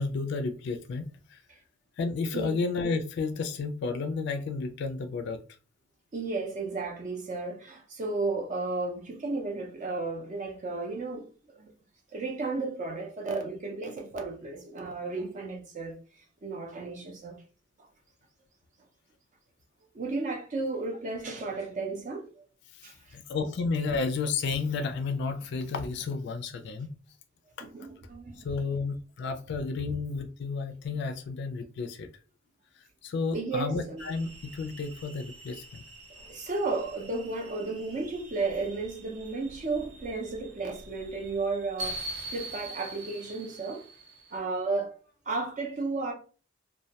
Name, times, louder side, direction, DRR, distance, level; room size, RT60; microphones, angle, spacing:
voice 1, 0.0-1.4 2.0-5.4 22.7-26.9 27.6-27.7 28.4-32.1 33.0-35.8, left 4 dB, 60° left, 0.3 m, -32 dB
voice 2, 6.1-11.3 11.6-11.7 12.1-17.4 19.9-22.4 22.8-23.2 27.6-28.4 29.8-29.9 33.3-34.0 36.2-43.8 44.3-45.0 45.3-46.1, right 3 dB, 40° right, 0.4 m, -33 dB
sound 1, 34.0-44.4, right 1 dB, 85° right, 0.7 m, -44 dB
2.2 x 2.1 x 2.8 m
head